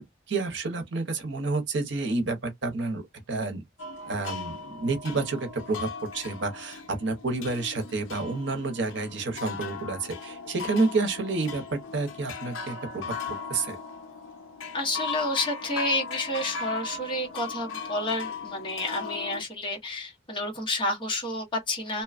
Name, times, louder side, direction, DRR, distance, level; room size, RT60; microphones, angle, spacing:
voice 1, 0.0-3.0 3.3-3.6 4.1-13.8, right 3 dB, 65° right, 0.8 m, -29 dB
sound 1, 3.8-19.4, left 5 dB, 80° left, 0.5 m, -38 dB
voice 2, 14.7-22.0, left 1 dB, 25° left, 1.0 m, -30 dB
2.8 x 2.2 x 2.4 m
head